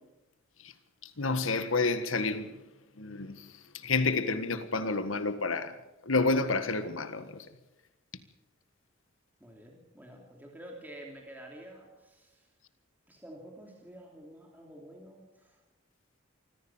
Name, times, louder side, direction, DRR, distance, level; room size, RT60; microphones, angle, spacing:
voice 1, 1.2-2.5 3.0-3.4 3.8-5.7 6.0-7.4, left 3 dB, 70° left, 1.6 m, -29 dB
voice 2, 9.4-12.5 13.1-15.6, right 1 dB, 10° right, 3.0 m, -49 dB
25.5 x 15.0 x 7.3 m
head